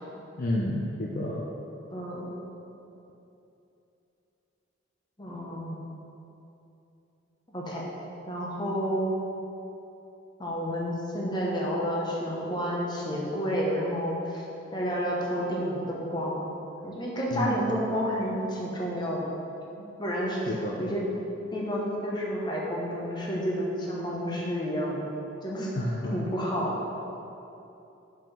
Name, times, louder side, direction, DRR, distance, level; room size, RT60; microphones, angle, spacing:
voice 1, 0.4-1.4 17.3-17.7 20.5-20.8 25.7-26.2, left 1 dB, 45° left, -3 dB, 0.5 m, -30 dB
voice 2, 1.9-2.3 5.2-5.8 7.5-7.8 8.3-9.0 10.4-14.4 14.7-16.5 16.8-19.2 20.0-20.4 20.8-21.1 21.5-25.0 25.4-25.7 26.1-26.7, equal, 20° left, -4 dB, 1.1 m, -30 dB
5.5 x 5.3 x 5.4 m, 2.9 s
head